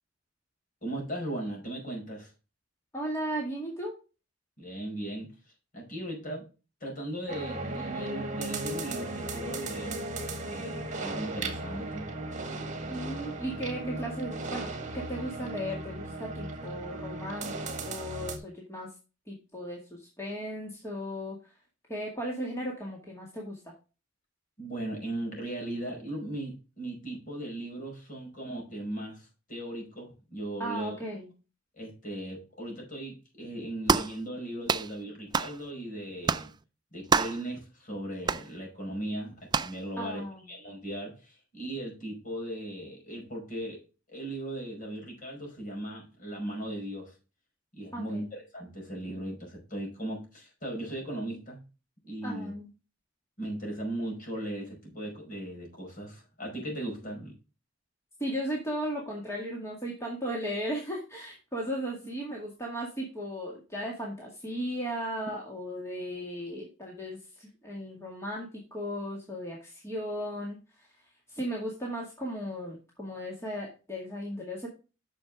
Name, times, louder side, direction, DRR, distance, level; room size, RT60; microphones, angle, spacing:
voice 1, 0.8-2.3 4.6-5.3 5.7-6.5 6.8-10.0 10.4-12.1 24.6-31.0 31.7-36.5 36.9-43.8 44.1-47.1 47.7-51.6 52.0-52.5 53.4-57.3, right 1 dB, 45° left, 0 dB, 5.0 m, -38 dB
voice 2, 2.9-3.9 12.9-17.5 17.8-18.9 19.3-21.5 21.9-23.7 30.6-31.3 40.0-40.4 47.9-48.2 52.2-52.7 57.0-57.1 58.2-70.9 71.3-74.7, equal, 15° left, -3 dB, 2.1 m, -36 dB
sound 1, 7.3-18.4, right 2 dB, 40° right, 1.8 m, -36 dB
sound 2, 33.9-34.2 34.7-34.9 35.3-35.6 36.3-36.5 37.1-37.4 38.3-38.5 39.5-39.8, right 5 dB, 20° right, 0.4 m, -26 dB
9.5 x 6.5 x 3.6 m, 0.31 s
head